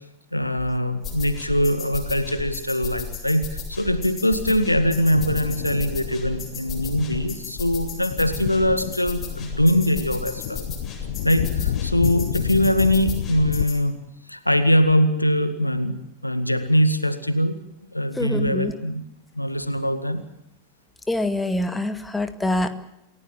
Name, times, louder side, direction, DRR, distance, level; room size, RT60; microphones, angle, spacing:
voice 1, 0.3-10.6 11.2-14.0 14.3-17.5 17.9-19.0 19.4-20.2, equal, 85° left, 11 dB, 1.9 m, -22 dB
sound 1, 1.0-13.8, left 5 dB, 25° left, 7.9 m, -34 dB
Thunder, 3.9-13.7, left 11 dB, 55° left, 1.2 m, -31 dB
voice 2, 18.2-18.7 21.1-22.7, left 1 dB, 5° left, 9 dB, 2.0 m, -25 dB
28.5 x 16.5 x 7.5 m, 0.85 s
figure-of-eight pair, 90°, 0 cm